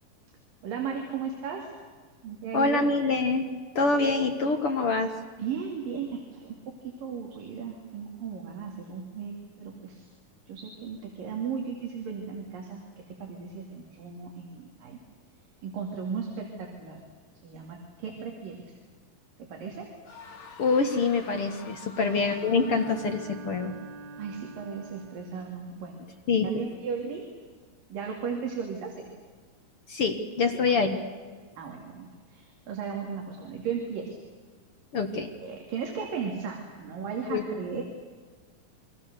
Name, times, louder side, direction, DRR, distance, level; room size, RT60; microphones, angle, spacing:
voice 1, 0.6-1.7 2.2-2.9 5.4-10.1 10.5-15.0 15.6-17.0 17.4-18.7 19.4-19.9 22.0-22.2 24.2-26.0 26.4-27.3 27.9-29.1 30.7-30.8 31.6-34.2 35.3-37.8, right 6 dB, 75° right, 1 dB, 4.2 m, -36 dB
voice 2, 2.5-3.4 3.8-5.1 20.6-23.7 26.3-26.7 29.9-31.0 34.9-35.3 37.3-37.4, left 4 dB, 50° left, 5 dB, 2.0 m, -25 dB
sound 1, 20.0-23.4, left 5 dB, 70° left, 4.3 m, -47 dB
Bowed string instrument, 22.3-25.5, right 4 dB, 45° right, 1.7 m, -45 dB
29.0 x 24.0 x 6.8 m, 1.5 s
omnidirectional pair, 4.0 m